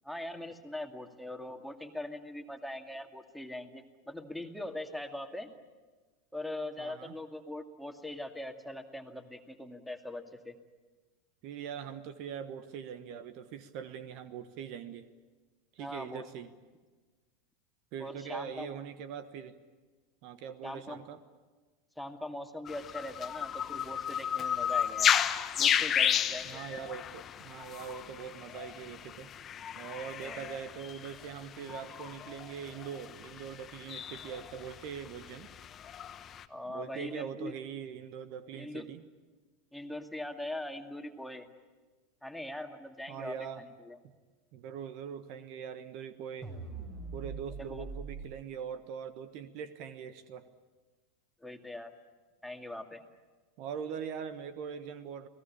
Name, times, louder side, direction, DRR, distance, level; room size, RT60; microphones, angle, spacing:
voice 1, 0.0-5.5 6.3-10.5 15.8-16.2 18.0-18.7 20.6-21.0 22.0-25.1 25.6-26.6 30.2-30.5 36.5-37.5 38.6-38.9 39.7-41.5 42.2-44.0 47.6-47.8 51.4-51.9 52.4-53.0, left 1 dB, ahead, 4 dB, 2.3 m, -41 dB
voice 2, 6.8-7.2 11.4-15.1 15.7-16.5 17.9-19.6 20.2-21.2 26.4-29.3 29.7-35.5 36.6-39.0 43.1-43.6 44.5-46.5 47.1-50.5 53.6-55.3, right 8 dB, 55° right, 12 dB, 1.3 m, -42 dB
sound 1, 22.7-36.4, left 9 dB, 35° left, 1.2 m, -33 dB
sound 2, 46.4-48.3, right 4 dB, 35° right, 5.8 m, -42 dB
29.0 x 18.5 x 8.6 m, 1.3 s
figure-of-eight pair, 85°, 0 cm